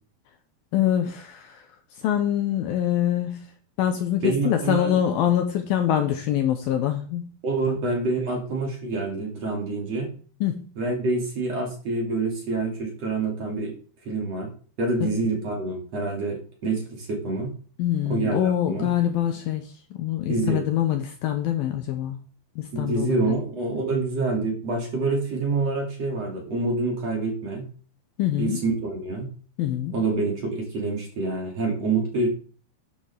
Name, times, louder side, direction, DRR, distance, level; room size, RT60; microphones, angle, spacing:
voice 1, 0.7-1.7 2.0-3.5 3.8-7.3 7.7-7.8 10.4-10.7 15.0-15.1 17.8-22.2 22.6-23.3 28.2-28.6 29.6-30.0, left 11 dB, 75° left, 6 dB, 2.3 m, -25 dB
voice 2, 4.2-4.9 7.4-10.1 10.8-13.7 14.1-14.5 14.8-17.5 18.0-18.9 20.3-20.6 22.7-27.7 28.4-29.3 29.9-32.3, right 3 dB, 40° right, 0 dB, 3.2 m, -27 dB
12.0 x 9.9 x 3.5 m, 0.42 s
omnidirectional pair, 4.9 m